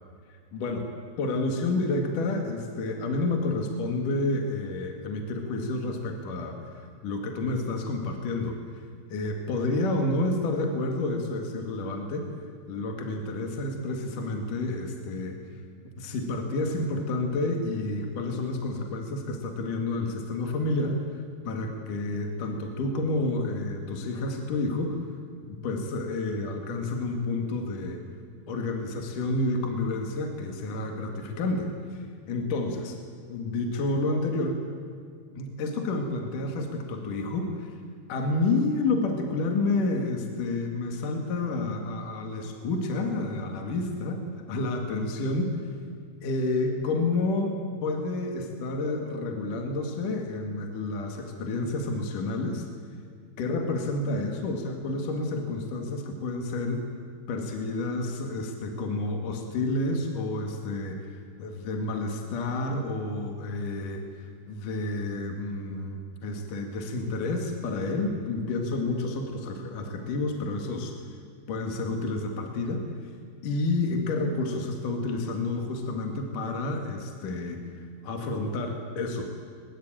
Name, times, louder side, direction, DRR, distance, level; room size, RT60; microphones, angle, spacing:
voice 1, 0.5-0.9 1.2-12.3 12.7-15.4 16.0-21.0 21.4-25.0 25.4-28.0 28.5-33.0 33.3-34.6 35.4-37.7 38.1-45.6 46.2-52.7 53.4-56.8 57.3-61.1 61.4-71.1 71.5-72.9 73.4-77.6 78.0-79.3, left 2 dB, 50° left, 3 dB, 2.9 m, -30 dB
22.0 x 22.0 x 9.0 m, 2.1 s
omnidirectional pair, 5.6 m